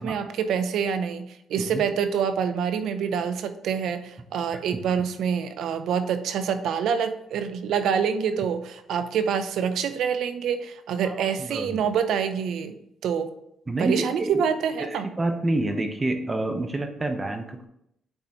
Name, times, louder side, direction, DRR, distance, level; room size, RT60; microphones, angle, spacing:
voice 1, 0.0-12.8 13.0-13.3 13.8-15.1, right 7 dB, 75° right, 10 dB, 0.5 m, -26 dB
voice 2, 11.0-11.8 13.7-14.4 14.8-17.7, right 2 dB, 25° right, 6 dB, 0.7 m, -28 dB
8.9 x 4.0 x 2.9 m, 0.77 s
cardioid pair, 90°, 0 cm